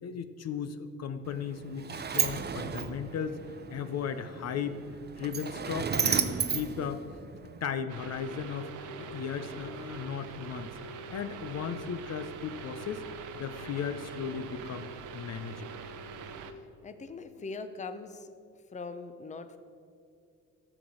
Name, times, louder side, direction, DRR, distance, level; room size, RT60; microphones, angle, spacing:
voice 1, 0.0-3.4 3.7-4.8 5.2-7.0 7.6-10.7 11.1-13.0 13.3-14.9 15.1-15.7, left 7 dB, 55° left, 10 dB, 0.7 m, -36 dB
Sliding door, 1.3-7.7, right 6 dB, 35° right, 0.7 m, -33 dB
sound 1, 7.9-16.5, right 4 dB, 85° right, 0.9 m, -43 dB
voice 2, 16.8-18.3 18.7-19.6, left 4 dB, 25° left, 9 dB, 0.7 m, -41 dB
13.5 x 7.0 x 6.2 m, 2.4 s
cardioid pair, 90°, 30 cm